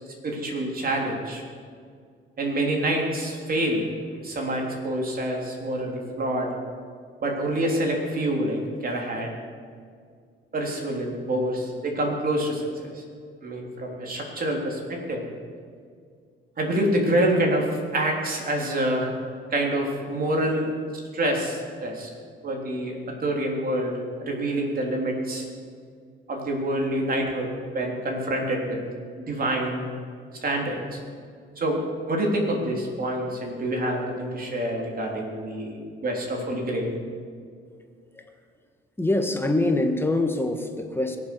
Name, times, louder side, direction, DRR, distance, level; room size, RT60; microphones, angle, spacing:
voice 1, 0.2-1.4 2.4-3.9 4.1-6.5 7.2-9.4 10.5-13.0 13.4-15.2 16.6-19.1 19.5-20.7 21.1-22.1 22.4-25.5 26.3-27.5 27.7-28.8 29.2-29.9 30.4-31.0 31.6-37.0, right 1 dB, 45° right, 0 dB, 3.6 m, -27 dB
voice 2, 39.0-41.2, left 2 dB, 10° left, 5 dB, 1.7 m, -24 dB
22.0 x 7.5 x 6.3 m, 2.1 s
cardioid pair, 90°, 20 cm